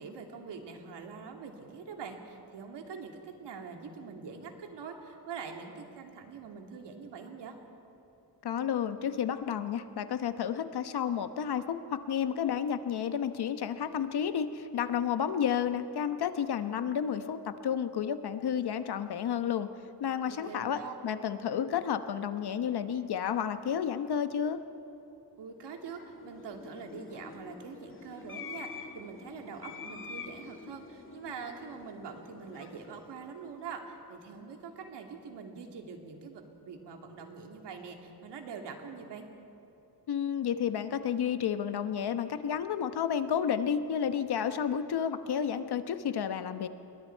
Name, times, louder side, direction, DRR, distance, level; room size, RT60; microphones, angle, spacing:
voice 1, 0.0-7.6 20.3-20.9 25.4-39.3, right 5 dB, 80° right, 3 dB, 2.6 m, -44 dB
voice 2, 8.4-19.7 20.0-24.6 40.1-46.7, left 8 dB, 70° left, 10 dB, 1.1 m, -31 dB
sound 1, 25.6-34.1, left 5 dB, 30° left, 1.9 m, -47 dB
27.0 x 22.0 x 4.6 m, 3.0 s
wide cardioid pair, 120°, 41 cm